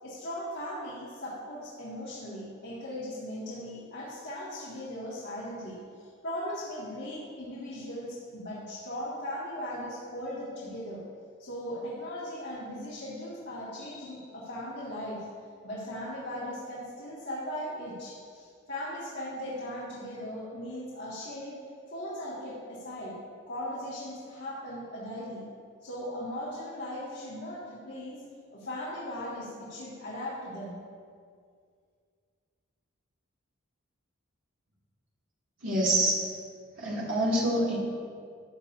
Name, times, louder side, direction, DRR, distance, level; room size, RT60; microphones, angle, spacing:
voice 1, 0.0-11.0 11.4-15.3 15.6-21.6 21.9-23.2 23.5-25.4 25.8-28.2 28.5-30.8, left 1 dB, 55° left, -11 dB, 2.1 m, -38 dB
voice 2, 35.6-36.2 36.8-37.8, right 1 dB, 75° right, -6 dB, 2.6 m, -26 dB
13.5 x 8.2 x 2.7 m, 2.1 s
head